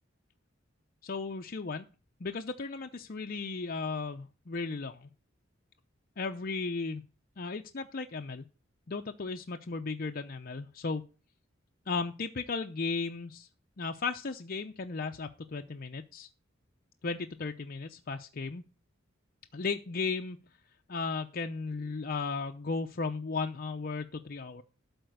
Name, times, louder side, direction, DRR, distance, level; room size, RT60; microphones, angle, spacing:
voice 1, 1.0-1.8 2.2-5.1 6.2-7.0 7.4-8.4 8.9-11.1 11.9-13.5 13.8-16.3 17.0-18.6 19.5-20.4 20.9-24.6, left 4 dB, 45° left, 4 dB, 0.6 m, -35 dB
12.5 x 4.2 x 8.1 m, 0.34 s
head